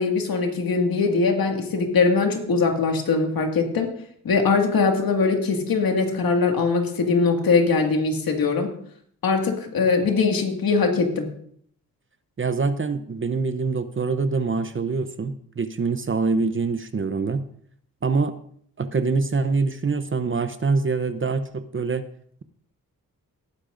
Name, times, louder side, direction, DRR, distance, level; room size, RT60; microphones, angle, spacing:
voice 1, 0.0-3.9 4.2-8.7 9.2-11.3, left 4 dB, 75° left, 3 dB, 2.1 m, -21 dB
voice 2, 12.4-17.4 18.0-18.3 18.8-22.0, right 4 dB, 35° right, 11 dB, 0.7 m, -24 dB
18.5 x 9.8 x 2.6 m, 0.63 s
cardioid pair, 65°, 35 cm